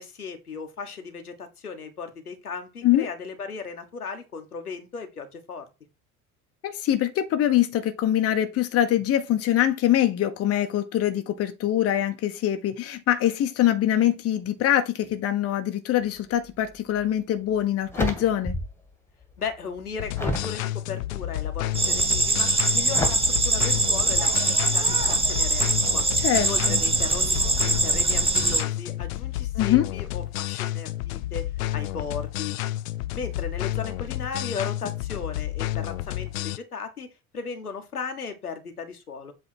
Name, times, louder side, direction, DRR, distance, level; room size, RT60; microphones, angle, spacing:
voice 1, 0.0-5.7 19.4-24.3 24.6-26.1 26.3-32.5 33.1-37.1 37.3-39.3, left 5 dB, 85° left, 1.2 m, -36 dB
voice 2, 6.6-18.6 26.2-26.8 29.6-29.9, left 12 dB, 35° left, 1.0 m, -23 dB
sound 1, 16.9-17.1 17.5-18.9 19.2-20.6 21.2-21.6 22.9-23.1, left 1 dB, 5° left, 1.8 m, -30 dB
sound 2, 20.0-36.6, left 15 dB, 65° left, 0.6 m, -31 dB
sound 3, 21.7-28.6, right 3 dB, 15° right, 1.2 m, -23 dB
7.8 x 3.5 x 4.5 m
figure-of-eight pair, 70°, 44 cm